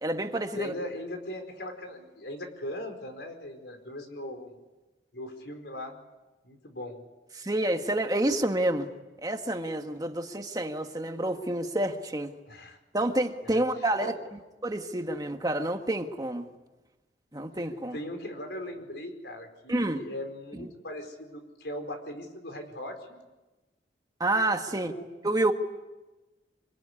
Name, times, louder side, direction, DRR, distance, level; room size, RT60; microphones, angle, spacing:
voice 1, 0.0-0.7 7.4-8.9 9.2-12.3 12.9-14.1 14.6-16.4 17.3-18.0 19.7-20.0 24.2-24.9 25.2-25.5, right 1 dB, 20° right, 5 dB, 1.6 m, -28 dB
voice 2, 0.5-4.5 5.1-6.0 6.4-7.0 12.5-12.8 13.4-14.1 17.6-23.2 24.7-25.1, left 1 dB, 75° left, 5 dB, 4.8 m, -39 dB
26.0 x 22.5 x 9.9 m, 1.1 s
head